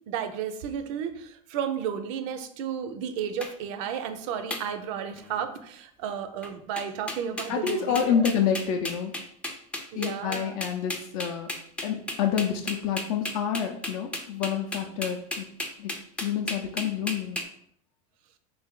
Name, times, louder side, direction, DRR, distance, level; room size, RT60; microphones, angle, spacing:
voice 1, 0.1-8.2 9.9-10.6, right 8 dB, 65° right, 10 dB, 0.5 m, -33 dB
sound 1, 3.4-3.5 4.5-4.6 5.2-5.4 6.4-6.5 6.8-17.4, left 1 dB, 5° left, 0.3 m, -34 dB
voice 2, 7.5-9.1 9.9-11.5 11.8-15.5 15.8-15.9 16.2-17.4, left 8 dB, 70° left, 3 dB, 0.5 m, -28 dB
3.3 x 2.6 x 3.7 m, 0.66 s
supercardioid pair, 140°, 18 cm